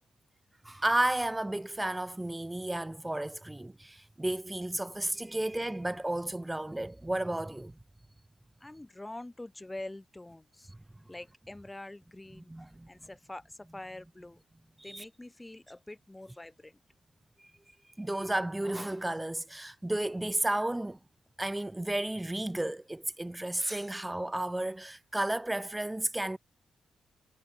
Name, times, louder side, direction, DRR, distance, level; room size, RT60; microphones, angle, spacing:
voice 1, 0.6-7.7 10.7-10.8 12.5-12.9 14.8-15.0 17.4-17.5 18.0-21.0 21.4-26.4, right 1 dB, 10° right, 1.6 m, -33 dB
voice 2, 8.6-10.7 11.1-12.5 12.9-14.4 14.8-16.8, left 2 dB, 15° left, 1.9 m, -45 dB
cardioid pair, 75°, 0 cm